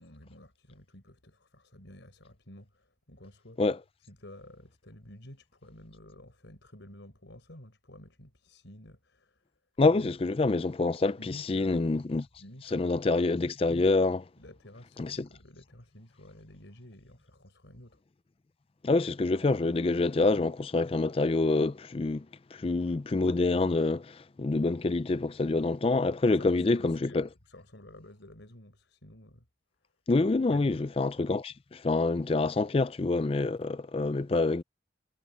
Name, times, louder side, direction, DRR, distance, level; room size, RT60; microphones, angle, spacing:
voice 1, 0.0-3.6 4.1-9.4 9.9-10.2 11.2-11.9 12.4-13.0 14.4-18.0 26.4-29.4 30.2-30.9, left 1 dB, 85° left, 4.4 m, -51 dB
voice 2, 9.8-12.3 12.7-14.2 15.0-15.3 18.8-22.3 22.5-27.3 30.1-34.6, left 3 dB, 30° left, 0.4 m, -27 dB
head